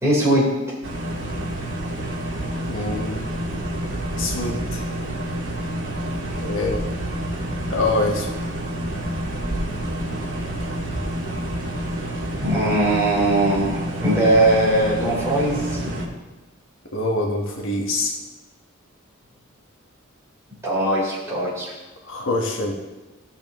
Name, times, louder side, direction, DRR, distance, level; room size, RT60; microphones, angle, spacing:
voice 1, 0.0-0.8 12.4-15.9 20.6-21.7, right 1 dB, 15° right, -7 dB, 3.9 m, -20 dB
sound 1, 0.8-16.1, right 1 dB, 65° right, 1.9 m, -28 dB
voice 2, 2.6-3.2 4.2-4.9 6.4-6.8 7.7-8.3 16.9-18.1 22.0-22.7, left 2 dB, 65° left, 0 dB, 1.4 m, -25 dB
16.5 x 7.1 x 3.1 m, 1.1 s
head